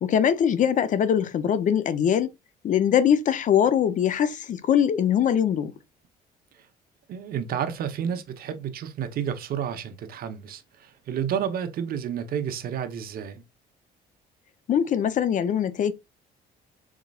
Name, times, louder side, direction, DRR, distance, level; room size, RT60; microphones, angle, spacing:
voice 1, 0.0-2.3 2.6-5.7 14.7-15.9, left 9 dB, 50° left, 0.6 m, -22 dB
voice 2, 7.1-13.4, right 8 dB, 60° right, 0.9 m, -31 dB
4.9 x 4.1 x 2.4 m
cardioid pair, 110°, 17 cm